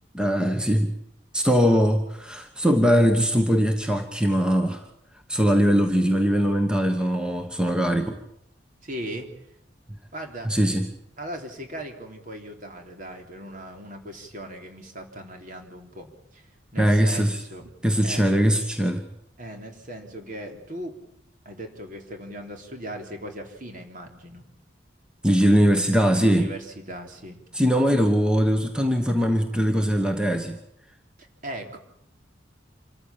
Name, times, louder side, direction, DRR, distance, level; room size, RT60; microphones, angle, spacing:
voice 1, 0.1-0.9 1.3-4.8 5.3-8.2 10.4-10.9 16.8-17.4 17.8-19.0 25.2-26.5 27.5-30.6, equal, 5° right, 5 dB, 1.3 m, -21 dB
voice 2, 8.8-9.3 10.1-10.5 11.2-16.5 16.7-17.7 18.0-18.3 19.4-21.0 21.5-24.4 26.1-27.4 31.4-31.8, right 1 dB, 45° right, 4 dB, 3.5 m, -38 dB
26.5 x 14.5 x 8.8 m, 0.75 s
head